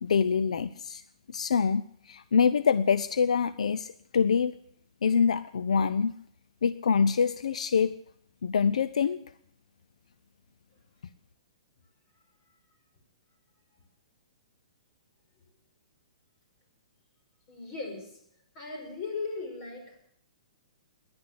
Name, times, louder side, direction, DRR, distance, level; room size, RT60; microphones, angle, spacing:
voice 1, 0.0-1.0 1.3-4.5 5.0-6.1 6.6-7.9 8.4-9.2, left 6 dB, 80° left, 14 dB, 0.6 m, -25 dB
voice 2, 17.5-18.2 18.5-20.0, left 4 dB, 40° left, 3 dB, 5.9 m, -37 dB
17.0 x 10.5 x 7.9 m, 0.68 s
hypercardioid pair, 140°, 4 cm